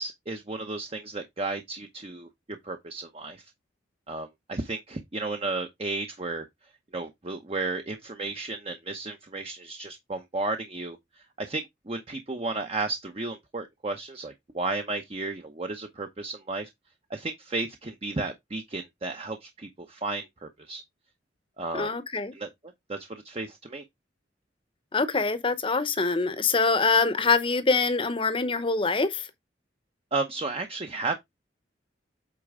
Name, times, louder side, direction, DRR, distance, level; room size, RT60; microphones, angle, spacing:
voice 1, 0.0-2.3 2.6-3.4 4.1-6.5 6.9-16.7 17.1-20.8 21.6-21.9 22.3-22.5 22.9-23.8 30.1-31.2, right 3 dB, 35° right, 0.8 m, -33 dB
voice 2, 21.7-22.3 24.9-29.3, left 4 dB, 30° left, 0.8 m, -24 dB
8.4 x 4.4 x 3.6 m
head